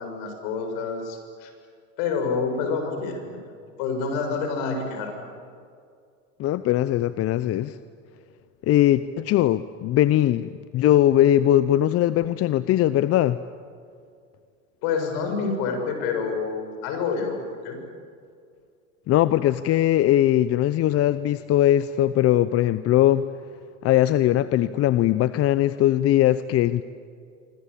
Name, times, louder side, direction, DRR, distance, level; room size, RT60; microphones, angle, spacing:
voice 1, 0.0-1.5 2.0-3.4 3.8-5.2 14.8-17.8, left 5 dB, 60° left, 5 dB, 7.3 m, -28 dB
voice 2, 6.4-7.8 8.6-13.4 19.1-23.2 23.8-26.8, left 13 dB, 35° left, 14 dB, 0.8 m, -20 dB
26.5 x 25.5 x 8.6 m, 2.3 s
supercardioid pair, 110°, 40 cm